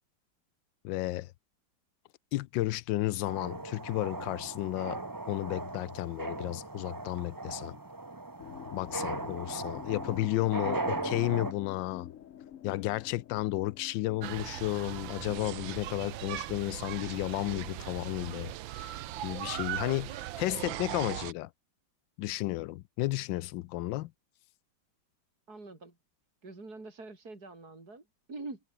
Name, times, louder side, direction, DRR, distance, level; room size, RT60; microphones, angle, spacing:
voice 1, 0.8-1.3 2.3-5.0 5.3-7.8 8.7-12.1 12.6-21.5 22.2-24.1, left 17 dB, 75° left, 1.2 m, -33 dB
sound 1, 3.2-11.5, right 2 dB, 15° right, 0.8 m, -38 dB
sound 2, 8.4-15.9, left 10 dB, 55° left, 0.9 m, -48 dB
voice 2, 9.0-9.4 10.2-10.3 25.5-26.0 26.4-28.6, right 3 dB, 50° right, 5.0 m, -45 dB
sound 3, 14.2-21.3, right 14 dB, 80° right, 1.5 m, -39 dB
omnidirectional pair, 2.1 m